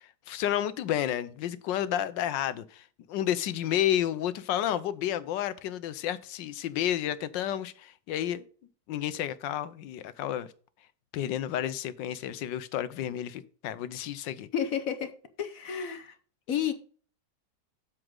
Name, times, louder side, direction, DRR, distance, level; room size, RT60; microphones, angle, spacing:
voice 1, 0.0-8.4 8.9-10.5 11.1-14.5, left 11 dB, 85° left, 1.4 m, -31 dB
voice 2, 14.5-15.1 15.4-16.1 16.5-16.7, left 8 dB, 55° left, 1.1 m, -30 dB
7.8 x 7.6 x 3.8 m
omnidirectional pair, 2.0 m